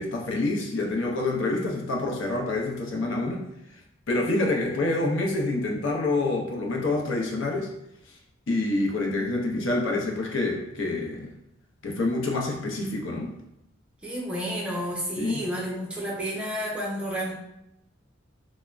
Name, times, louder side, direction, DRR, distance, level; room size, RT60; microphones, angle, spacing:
voice 1, 0.0-3.5 4.1-7.7 8.5-11.3 11.8-13.3 15.2-15.5, left 2 dB, 70° left, 0 dB, 0.6 m, -27 dB
voice 2, 14.0-17.3, equal, 5° right, -4 dB, 0.6 m, -31 dB
3.2 x 2.1 x 2.4 m, 0.82 s
head